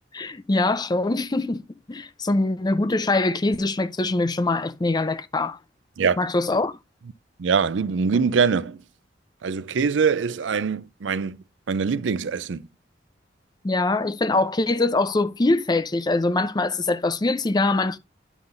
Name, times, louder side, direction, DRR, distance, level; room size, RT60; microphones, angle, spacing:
voice 1, 0.1-1.6 1.9-5.6 6.2-6.7 13.6-18.0, left 2 dB, 25° left, 0.5 m, -23 dB
voice 2, 7.4-8.8 9.4-11.4 11.7-12.6, right 5 dB, 85° right, 0.5 m, -23 dB
9.6 x 7.1 x 2.6 m
head